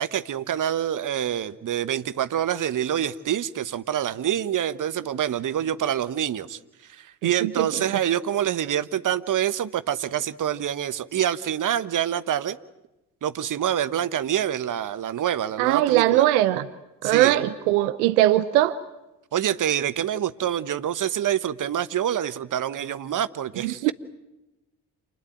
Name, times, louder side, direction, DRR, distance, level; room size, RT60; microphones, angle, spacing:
voice 1, 0.0-12.6 13.2-16.3 17.0-17.3 19.3-23.9, right 10 dB, 45° right, 15 dB, 1.2 m, -26 dB
voice 2, 15.6-16.6 17.0-18.8 23.6-23.9, right 14 dB, 75° right, 16 dB, 0.9 m, -20 dB
28.0 x 21.0 x 9.0 m, 0.96 s
figure-of-eight pair, 45°, 45 cm